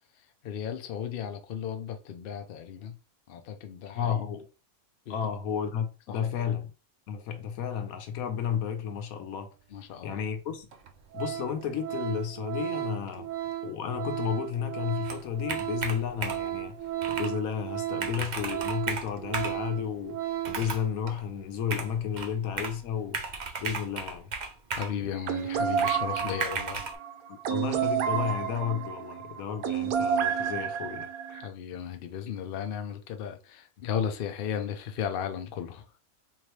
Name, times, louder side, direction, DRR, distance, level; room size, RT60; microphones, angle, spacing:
voice 1, 0.4-3.0 3.3-4.2 5.1-5.3 6.1-6.5 9.7-10.2 24.8-26.8 31.3-35.9, left 8 dB, 60° left, 0.6 m, -35 dB
voice 2, 3.9-4.5 5.1-6.7 7.1-9.5 10.0-10.7 11.1-13.3 13.6-16.8 17.1-23.2 23.6-24.3 26.2-26.3 27.3-31.1, left 8 dB, 75° left, 1.2 m, -32 dB
Organ, 10.1-10.2 10.7-10.9 11.1-20.7 21.0-21.2, right 13 dB, 65° right, 1.0 m, -35 dB
Computer keyboard, 15.0-16.5 17.0-17.3 17.7-17.8 18.0-19.6 20.4-20.9 21.7-22.8 23.1-25.0 25.8-26.9, right 4 dB, 50° right, 0.5 m, -35 dB
sound 1, 25.2-31.5, right 8 dB, 85° right, 1.1 m, -30 dB
3.7 x 3.0 x 3.1 m
omnidirectional pair, 1.5 m